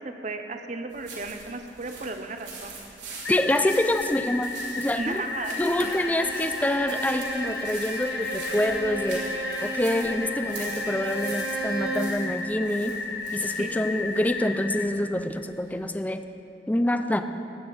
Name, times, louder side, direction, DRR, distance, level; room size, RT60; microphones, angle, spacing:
voice 1, 0.0-2.7 4.9-5.6 5.8-6.2 13.6-13.7, right 3 dB, 45° right, 6 dB, 0.8 m, -35 dB
sound 1, 0.9-15.8, right 3 dB, 75° right, 3.2 m, -43 dB
sound 2, 3.2-14.8, left 4 dB, 90° left, 0.9 m, -34 dB
voice 2, 3.3-4.5 4.8-5.2 5.6-9.3 9.6-13.0 13.3-16.2 16.7-17.2, left 1 dB, 10° left, 8 dB, 0.4 m, -26 dB
Bowed string instrument, 5.4-12.3, right 2 dB, 60° right, 1.7 m, -35 dB
19.5 x 8.6 x 4.3 m, 2.9 s
head